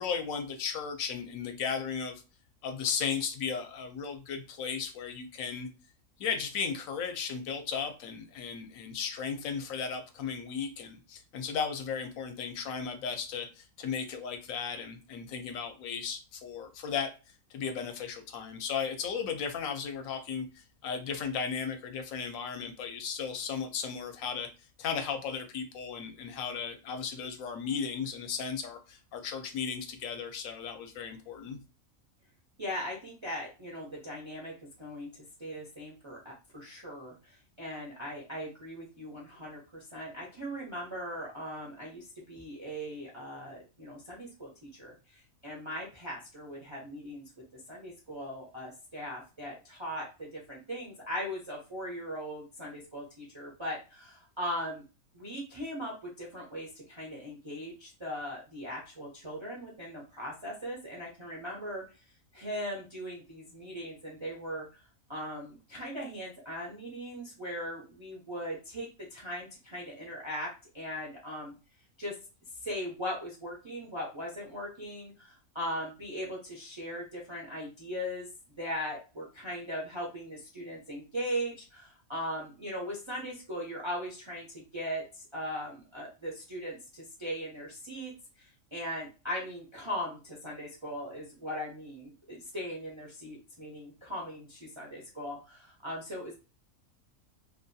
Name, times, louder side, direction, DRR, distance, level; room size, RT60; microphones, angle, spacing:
voice 1, 0.0-2.2 2.6-5.7 6.2-17.1 17.5-24.5 24.8-31.6, left 6 dB, 75° left, 6 dB, 1.0 m, -35 dB
voice 2, 32.6-34.5 34.8-35.1 35.4-47.2 47.5-54.8 55.1-61.8 62.3-64.7 65.1-70.5 70.7-71.5 72.0-72.1 72.6-78.3 78.6-88.1 88.4-96.3, equal, 40° right, -3 dB, 0.4 m, -39 dB
2.7 x 2.3 x 2.6 m, 0.32 s
omnidirectional pair, 1.5 m